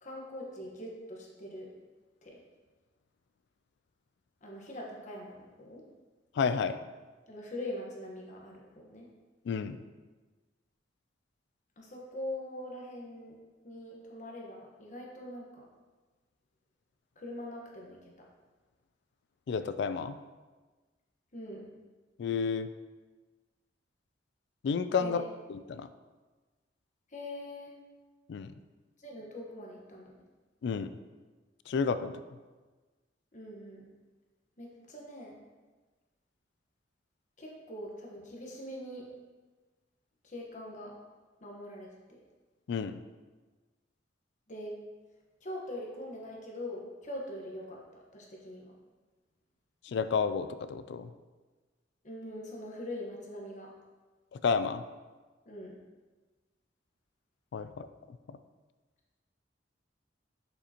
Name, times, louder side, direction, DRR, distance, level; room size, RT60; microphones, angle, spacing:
voice 1, 0.0-1.7 2.2-2.3 4.4-5.8 7.3-9.1 11.8-13.4 13.6-15.6 17.2-18.3 21.3-21.7 25.0-25.3 27.1-27.7 29.0-30.2 33.3-33.9 34.6-35.4 37.4-39.1 40.2-40.9 41.4-42.2 44.5-44.7 45.4-48.7 52.0-53.7 55.4-55.8 57.6-57.7, left 1 dB, 45° left, -2 dB, 1.2 m, -43 dB
voice 2, 6.4-6.8 9.5-9.8 19.5-20.2 22.2-22.7 24.6-25.2 25.5-25.9 28.3-28.5 30.6-30.9 31.7-32.4 42.7-43.0 49.8-51.1 54.3-54.8 57.5-57.9, left 5 dB, 65° left, 12 dB, 0.3 m, -31 dB
6.6 x 5.4 x 2.9 m, 1.3 s
head